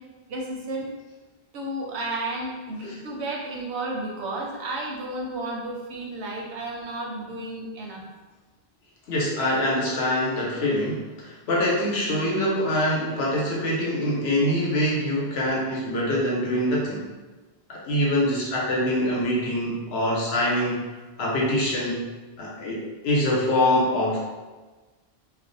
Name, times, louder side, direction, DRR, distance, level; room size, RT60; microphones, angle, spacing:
voice 1, 0.3-0.9 1.5-8.0, right 2 dB, 85° right, -2 dB, 0.9 m, -32 dB
voice 2, 9.1-17.0 17.7-20.9 21.2-22.1 22.4-24.2, left 1 dB, 80° left, -4 dB, 0.9 m, -24 dB
2.4 x 2.1 x 2.5 m, 1.3 s
omnidirectional pair, 1.1 m